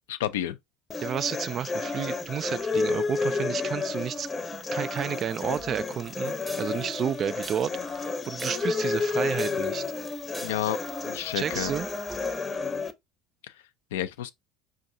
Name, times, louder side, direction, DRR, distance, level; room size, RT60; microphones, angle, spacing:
voice 1, 0.1-0.6 10.4-10.8 11.1-11.8 13.9-14.3, left 12 dB, 75° left, 0.4 m, -30 dB
sound 1, 0.9-12.9, left 4 dB, 25° left, 0.7 m, -31 dB
voice 2, 1.0-7.7 8.3-9.8 11.3-11.9, right 8 dB, 45° right, 0.3 m, -31 dB
sound 2, 5.0-12.6, right 2 dB, 10° right, 0.8 m, -46 dB
5.2 x 2.4 x 2.7 m
hypercardioid pair, 70°, 0 cm